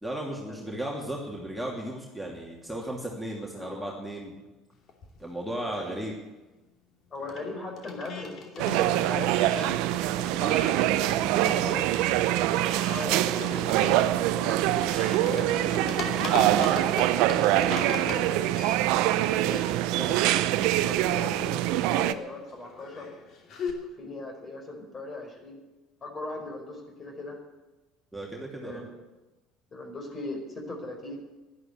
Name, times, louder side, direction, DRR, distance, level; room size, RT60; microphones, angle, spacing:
voice 1, 0.0-4.3 5.2-6.1 11.3-12.1 28.1-28.8, right 1 dB, ahead, -3 dB, 2.7 m, -35 dB
voice 2, 3.3-4.0 5.7-6.0 7.1-9.8 10.3-10.9 12.7-14.6 15.3-17.0 17.6-18.5 19.1-20.2 20.8-23.1 24.0-25.6 26.0-27.4 28.5-29.0 29.7-31.2, left 2 dB, 35° left, 3 dB, 4.8 m, -39 dB
sound 1, 4.9-6.1 6.4-23.7, left 4 dB, 50° left, 2.6 m, -40 dB
sound 2, 8.6-22.1, right 14 dB, 65° right, 0.6 m, -24 dB
12.0 x 11.0 x 7.9 m, 1.1 s
hypercardioid pair, 65°, 0 cm